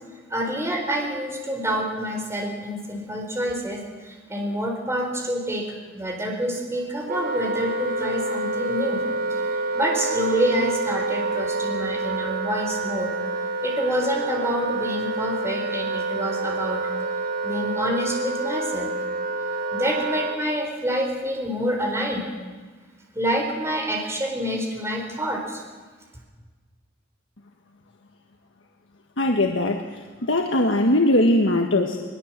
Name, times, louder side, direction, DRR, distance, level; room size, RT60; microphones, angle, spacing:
voice 1, 0.3-13.1 13.6-16.8 17.4-18.9 19.7-22.3 23.1-25.6, equal, 15° right, 1 dB, 4.2 m, -27 dB
Wind instrument woodwind instrument, 7.1-20.4, right 3 dB, 50° right, 2.0 m, -28 dB
voice 2, 29.2-32.0, left 1 dB, 70° left, 3 dB, 1.6 m, -20 dB
22.0 x 21.5 x 7.5 m, 1.4 s
head